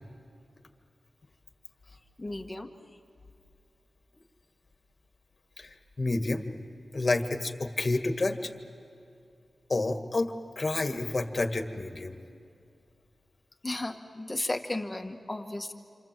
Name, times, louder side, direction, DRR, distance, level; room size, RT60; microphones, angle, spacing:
voice 1, 2.2-2.7 13.6-15.7, left 2 dB, 20° left, 4 dB, 1.7 m, -34 dB
voice 2, 6.0-6.5 6.9-8.5 9.7-12.2, left 2 dB, 40° left, 6 dB, 1.9 m, -29 dB
28.0 x 27.5 x 7.7 m, 2.5 s
wide cardioid pair, 85°, 0 cm